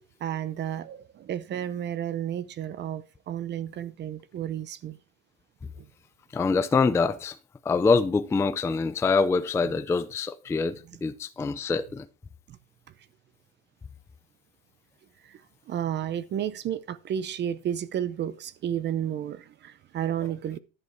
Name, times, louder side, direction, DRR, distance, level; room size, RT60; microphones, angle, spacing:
voice 1, 0.2-5.0 5.8-5.9 9.7-9.8 10.9-11.0 12.5-12.6 15.2-15.4 15.7-20.6, right 10 dB, 30° right, 0.7 m, -32 dB
voice 2, 6.3-7.4 7.7-12.1, left 4 dB, 10° left, 0.4 m, -25 dB
11.0 x 9.2 x 4.5 m
cardioid pair, 150°, 37 cm